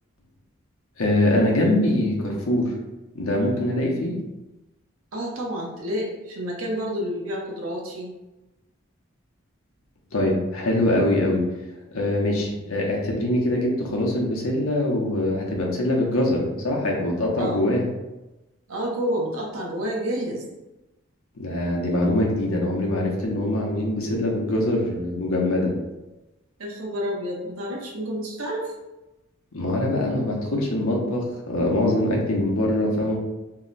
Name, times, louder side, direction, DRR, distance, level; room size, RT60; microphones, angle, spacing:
voice 1, 1.0-2.7 3.1-4.2 10.1-11.4 11.9-17.8 21.4-25.7 29.5-33.2, left 1 dB, 80° left, -1 dB, 0.7 m, -23 dB
voice 2, 5.1-8.1 17.4-17.7 18.7-20.4 26.6-28.7, equal, 75° right, -1 dB, 0.8 m, -29 dB
2.7 x 2.1 x 3.9 m, 1.0 s
head